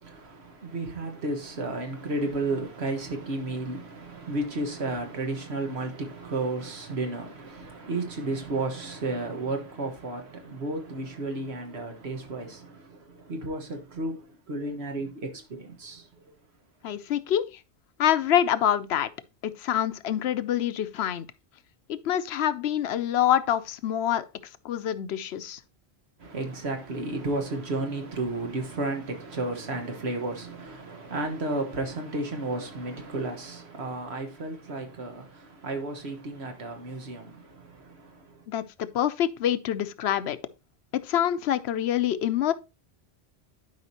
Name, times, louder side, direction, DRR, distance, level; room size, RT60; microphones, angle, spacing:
voice 1, 0.0-16.3 26.2-38.5, right 2 dB, 80° right, 1.7 m, -33 dB
voice 2, 16.8-17.6 18.0-19.1 19.4-21.3 21.9-24.3 24.6-25.6 38.5-40.4 40.9-42.5, left 10 dB, 80° left, 0.9 m, -26 dB
11.5 x 5.0 x 2.9 m
omnidirectional pair, 1.1 m